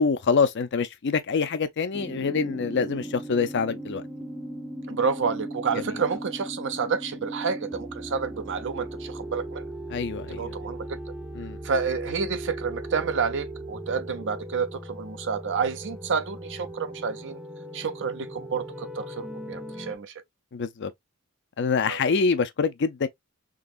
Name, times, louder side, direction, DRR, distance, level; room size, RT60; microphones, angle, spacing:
voice 1, 0.0-4.0 5.7-5.8 9.9-10.5 11.3-11.6 20.5-20.9 21.6-23.1, left 5 dB, 50° left, 0.5 m, -25 dB
sound 1, 1.9-20.0, right 1 dB, 5° right, 0.5 m, -38 dB
voice 2, 4.9-9.6 10.4-11.0 11.6-17.4 17.7-20.1 21.9-22.0, right 5 dB, 55° right, 0.6 m, -29 dB
3.8 x 2.9 x 2.4 m
head